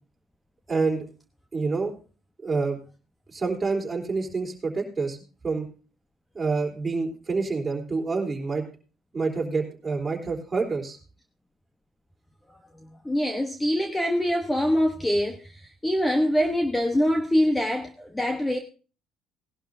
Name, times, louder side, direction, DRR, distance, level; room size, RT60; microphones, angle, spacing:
voice 1, 0.7-1.1 1.5-1.9 2.4-2.8 3.3-5.2 5.4-5.7 6.3-8.6 9.1-11.0, right 4 dB, 20° right, 3.6 m, -27 dB
voice 2, 13.0-18.6, equal, 10° left, 1.0 m, -24 dB
18.5 x 11.5 x 2.7 m
cardioid pair, 120°, 0 cm